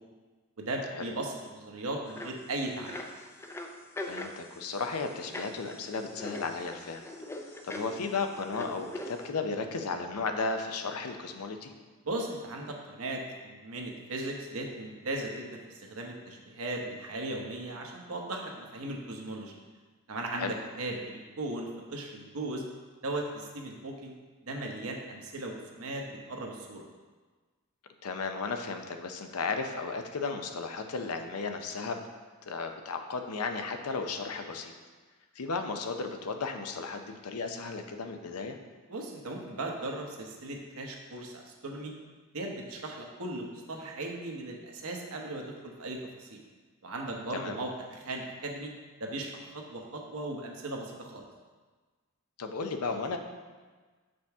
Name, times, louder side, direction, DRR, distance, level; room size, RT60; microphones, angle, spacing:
voice 1, 0.6-3.0 12.0-19.5 20.1-22.7 23.0-24.1 24.4-26.8 38.9-41.9 42.3-46.4 46.8-48.7 49.0-51.2, right 2 dB, 75° right, 1 dB, 1.0 m, -37 dB
sound 1, 2.1-2.4 2.7-9.3, left 1 dB, 10° left, 0.4 m, -42 dB
voice 2, 4.0-7.0 7.6-11.7 20.4-20.5 28.0-32.0 32.5-34.7 35.3-38.6 47.3-47.6 52.4-53.2, left 4 dB, 90° left, 6 dB, 0.6 m, -34 dB
6.8 x 5.2 x 3.5 m, 1.4 s
head